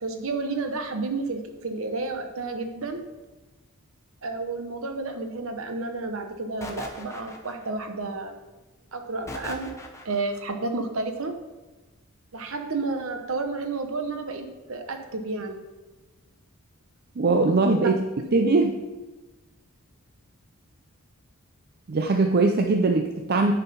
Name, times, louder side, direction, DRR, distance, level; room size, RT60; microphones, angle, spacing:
voice 1, 0.0-3.0 4.2-8.3 8.9-9.7 10.0-11.3 12.3-15.6 17.8-17.9, right 3 dB, 65° right, 6 dB, 1.0 m, -31 dB
sound 1, 6.6-7.9 9.3-10.4, left 1 dB, 15° left, 0.8 m, -39 dB
voice 2, 17.2-18.0 18.3-18.7 21.9-23.5, right 3 dB, 45° right, 4 dB, 0.5 m, -21 dB
9.8 x 4.5 x 5.5 m, 1.1 s
head